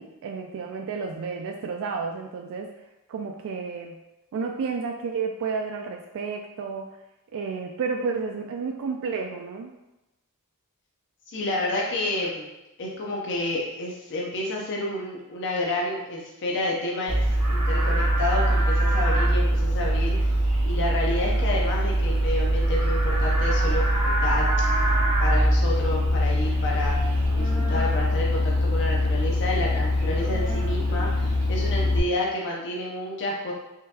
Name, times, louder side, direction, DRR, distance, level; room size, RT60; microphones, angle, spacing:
voice 1, 0.0-2.7 3.1-4.0 4.3-6.9 7.3-9.7, right 5 dB, 60° right, 3 dB, 0.3 m, -31 dB
voice 2, 11.3-12.5 12.8-20.4 20.6-24.9 25.2-33.5, left 1 dB, 55° left, -3 dB, 0.6 m, -30 dB
Livestock farm animals working animals, 17.1-32.0, equal, 80° right, 1.0 m, -23 dB
3.6 x 3.3 x 2.8 m, 0.97 s
head